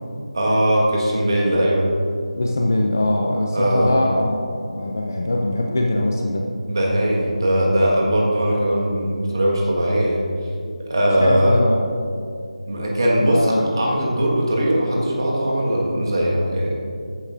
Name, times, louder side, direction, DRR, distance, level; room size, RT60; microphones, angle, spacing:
voice 1, 0.3-1.9 3.5-4.0 6.7-10.3 10.9-11.6 12.7-16.7, right 1 dB, 35° right, -3 dB, 1.5 m, -20 dB
voice 2, 2.4-6.5 11.2-11.9 13.2-13.7, left 1 dB, 25° left, 1 dB, 0.4 m, -22 dB
14.5 x 8.3 x 2.6 m, 2.4 s
figure-of-eight pair, 180°, 4 cm